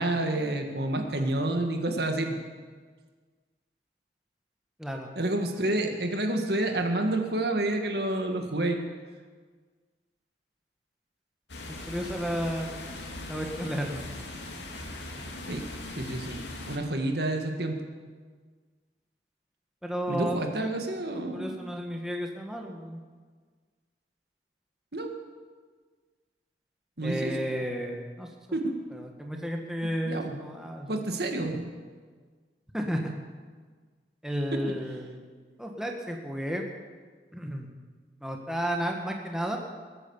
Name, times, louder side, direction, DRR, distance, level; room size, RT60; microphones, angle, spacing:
voice 1, 0.0-2.4 5.2-8.8 15.4-15.6 16.0-16.4 16.7-17.8 20.1-21.6 24.9-25.1 27.0-27.3 28.5-28.8 30.1-30.4 30.9-31.7, right 1 dB, 60° right, 4 dB, 1.9 m, -29 dB
voice 2, 4.8-5.1 11.7-12.8 13.3-14.0 19.8-20.7 21.3-23.0 27.0-28.3 28.9-31.0 32.7-33.1 34.2-35.2 35.6-36.6 37.3-37.7 38.2-39.6, equal, 5° right, 1 dB, 1.5 m, -32 dB
sound 1, 11.5-16.8, left 2 dB, 75° left, 2.5 m, -40 dB
21.5 x 9.4 x 7.2 m, 1.5 s
head